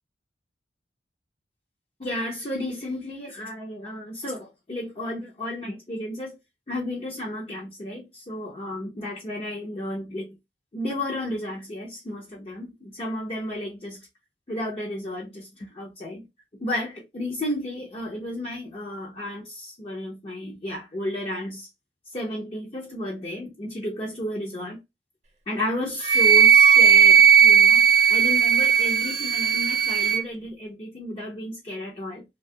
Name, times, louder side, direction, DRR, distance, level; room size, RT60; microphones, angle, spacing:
voice 1, 2.0-6.4 6.7-10.3 10.7-14.1 14.5-16.2 16.6-21.7 22.1-24.8 25.5-32.2, left 1 dB, 35° left, 0.6 m, -33 dB
Wind instrument woodwind instrument, 26.0-30.2, right 7 dB, 40° right, 0.8 m, -16 dB
2.7 x 2.3 x 2.6 m
head